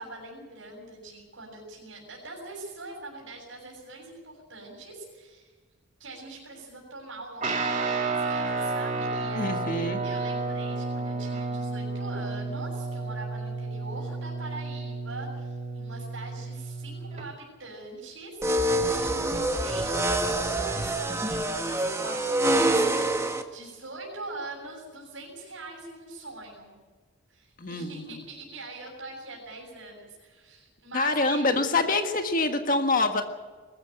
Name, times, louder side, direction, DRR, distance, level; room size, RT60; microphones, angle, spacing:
voice 1, 0.0-5.5 6.0-26.8 27.3-31.6, right 2 dB, 70° right, -2 dB, 7.0 m, -43 dB
Guitar, 7.4-17.2, right 3 dB, 35° right, 2.3 m, -31 dB
voice 2, 9.4-10.0 27.6-28.2 30.9-33.2, left 3 dB, 40° left, 5 dB, 1.6 m, -26 dB
sound 1, 18.4-23.4, right 1 dB, 15° right, 1.4 m, -26 dB
22.0 x 14.0 x 9.0 m, 1.4 s
head